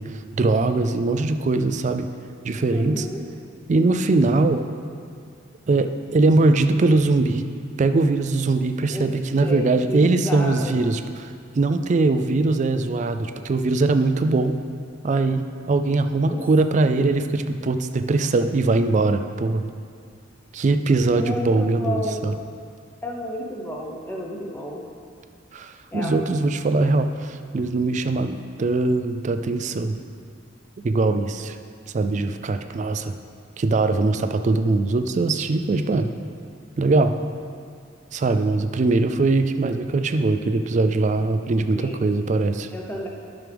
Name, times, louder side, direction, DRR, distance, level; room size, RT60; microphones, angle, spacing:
voice 1, 0.0-2.1 2.4-3.1 3.7-4.6 5.7-7.4 7.8-14.6 15.0-19.7 20.5-22.3 25.5-30.0 30.8-31.6 31.9-33.1 33.6-36.1 36.8-37.1 38.1-42.7, right 3 dB, 35° right, 9 dB, 0.3 m, -21 dB
voice 2, 2.7-3.3 8.9-9.1 9.4-10.8 16.3-16.5 21.2-22.3 23.0-24.8 25.9-26.2 41.8-42.1 42.7-43.1, left 1 dB, 10° left, -2 dB, 0.8 m, -31 dB
11.0 x 6.2 x 3.5 m, 2.2 s
head